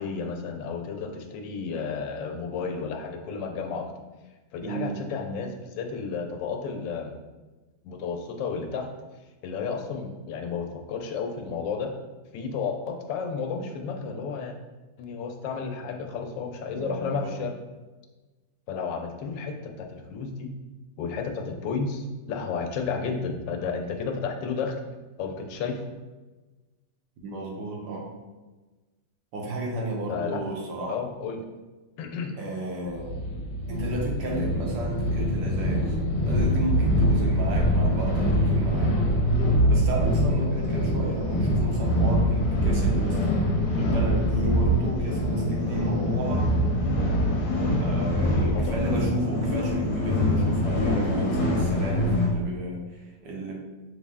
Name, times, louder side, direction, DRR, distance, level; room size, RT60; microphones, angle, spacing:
voice 1, 0.0-3.9 4.5-7.2 7.8-8.9 9.4-11.9 12.3-14.6 15.0-17.5 18.7-20.5 21.0-24.8 25.2-25.8 30.1-30.4 30.9-31.4 32.0-32.3 37.6-37.8 45.0-45.2 48.5-48.8, left 5 dB, 85° left, 4 dB, 1.2 m, -32 dB
voice 2, 4.6-5.0 16.7-17.3 27.2-28.1 29.3-31.1 32.3-33.2 33.7-36.0 36.2-38.9 39.7-43.4 43.8-46.5 47.8-53.5, right 2 dB, 70° right, -1 dB, 1.3 m, -32 dB
sound 1, 32.9-52.3, equal, 65° left, 1.2 m, -24 dB
5.5 x 2.1 x 3.5 m, 1.2 s
omnidirectional pair, 1.9 m